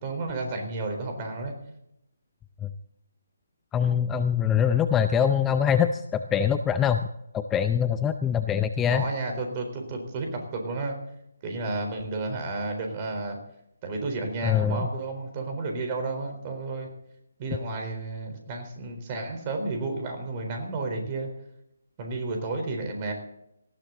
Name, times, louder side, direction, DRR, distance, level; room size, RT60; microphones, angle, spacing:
voice 1, 0.0-1.5 8.9-10.9 11.4-13.4 13.8-16.9 17.4-21.3 22.0-23.1, right 3 dB, 25° right, 4 dB, 4.1 m, -32 dB
voice 2, 3.7-7.0 7.3-9.0 14.4-14.9, left 8 dB, 10° left, 9 dB, 0.5 m, -23 dB
19.0 x 15.0 x 4.0 m, 0.79 s
figure-of-eight pair, 145°, 0 cm